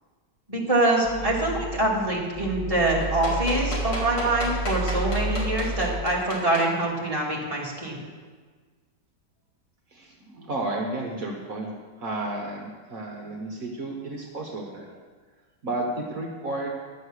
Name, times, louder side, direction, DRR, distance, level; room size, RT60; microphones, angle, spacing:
voice 1, 0.5-8.0, right 2 dB, 20° right, -4 dB, 2.5 m, -25 dB
sound 1, 1.0-6.0, right 2 dB, ahead, 1.3 m, -31 dB
sound 2, 3.0-6.7 7.7-7.8, left 1 dB, 80° left, 3.0 m, -33 dB
voice 2, 9.9-14.9 15.6-16.7, right 2 dB, 55° right, 0 dB, 1.7 m, -32 dB
11.0 x 7.7 x 6.5 m, 1.5 s
omnidirectional pair, 1.8 m